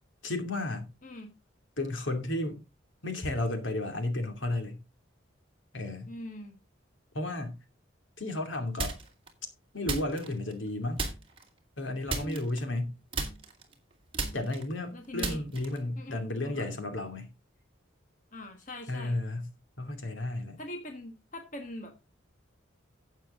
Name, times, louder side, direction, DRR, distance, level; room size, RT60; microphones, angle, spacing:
voice 1, 0.2-0.9 1.8-2.6 3.0-4.8 5.7-6.1 7.1-7.6 8.2-9.0 9.7-11.0 11.8-13.0 14.3-17.3 18.9-19.5 19.8-20.6, left 2 dB, 75° left, 2.7 m, -33 dB
voice 2, 6.1-6.6 12.1-12.4 14.9-15.4 16.0-16.7 18.3-19.2 20.6-22.0, left 1 dB, 40° left, 1.6 m, -42 dB
sound 1, 8.8-9.3 9.9-10.7 11.0-11.5 12.1-12.9 13.1-15.9, right 3 dB, 25° right, 2.6 m, -35 dB
11.5 x 8.2 x 3.7 m
head